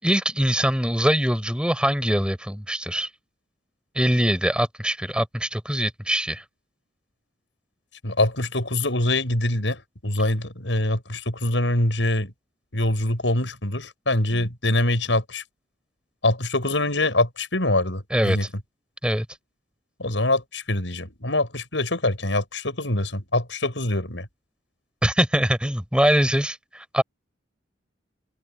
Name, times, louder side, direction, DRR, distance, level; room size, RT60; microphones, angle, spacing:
voice 1, 0.0-3.1 3.9-6.4 18.1-18.4 19.0-19.3 25.0-27.0, equal, 5° right, 5.7 m, -23 dB
voice 2, 8.0-12.3 12.7-15.4 16.2-18.5 20.0-24.3, left 1 dB, 85° left, 7.2 m, -24 dB
open air
head